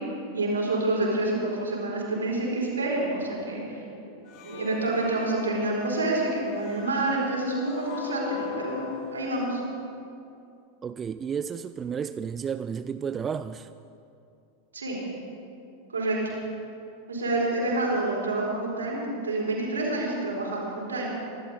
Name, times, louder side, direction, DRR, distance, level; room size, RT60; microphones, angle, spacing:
voice 1, 0.3-9.6 14.7-15.0 15.9-16.3 17.1-21.1, right 2 dB, 75° right, 4.6 m, -28 dB
sound 1, 4.3-9.5, left 6 dB, 40° left, 1.4 m, -40 dB
voice 2, 10.8-13.7, right 7 dB, 25° right, 0.3 m, -32 dB
25.0 x 12.0 x 4.2 m
figure-of-eight pair, 90°, 0 cm